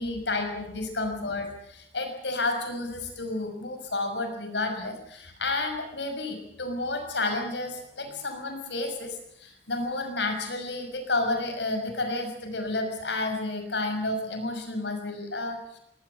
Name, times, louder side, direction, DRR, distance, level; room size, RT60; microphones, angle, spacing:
voice 1, 0.0-15.8, left 2 dB, 75° left, 5 dB, 6.1 m, -31 dB
23.0 x 19.5 x 8.2 m, 0.75 s
head